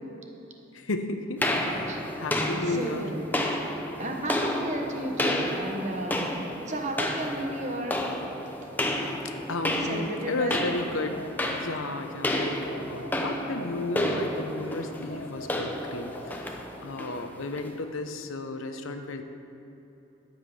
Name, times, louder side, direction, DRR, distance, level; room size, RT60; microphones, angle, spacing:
voice 1, 0.7-1.4 1.7-3.1 9.5-19.2, left 2 dB, 85° left, 7 dB, 0.9 m, -34 dB
sound 1, 1.4-17.8, left 1 dB, 10° left, 0.7 m, -31 dB
voice 2, 2.6-3.4 4.0-6.4 6.7-8.0 9.8-10.5, right 1 dB, 35° right, 2 dB, 1.1 m, -33 dB
sound 2, 10.3-12.1 12.6-14.5 15.1-17.0, equal, 55° left, 0.9 m, -45 dB
11.5 x 8.0 x 5.5 m, 3.0 s
head